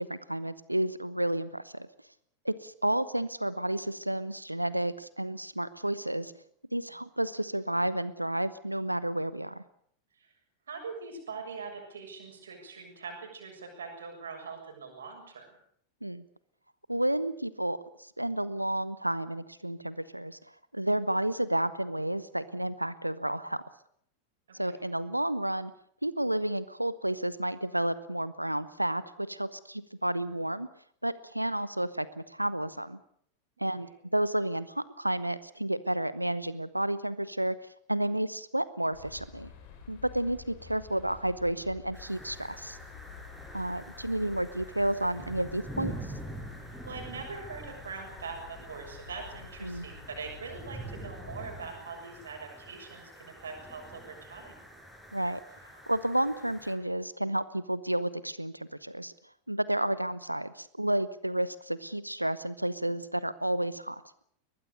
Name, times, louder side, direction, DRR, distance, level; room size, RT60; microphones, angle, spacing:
voice 1, 0.0-1.9 2.4-6.3 6.7-9.6 16.0-16.2 16.9-20.4 20.7-23.6 24.5-25.7 26.0-30.7 31.0-33.0 33.6-37.6 37.9-39.5 39.9-42.8 43.5-45.9 49.6-49.8 55.1-55.4 55.9-59.1 59.5-64.0, right 1 dB, 85° right, 17 dB, 0.9 m, -31 dB
voice 2, 10.7-15.5 24.5-24.7 33.8-33.9 46.9-54.6, right 4 dB, 70° right, 3 dB, 7.0 m, -42 dB
sound 1, 38.9-51.6, left 7 dB, 45° left, 5.3 m, -50 dB
sound 2, 41.9-56.7, right 1 dB, ahead, 6.5 m, -46 dB
22.5 x 20.0 x 6.8 m, 0.66 s
figure-of-eight pair, 90°, 0 cm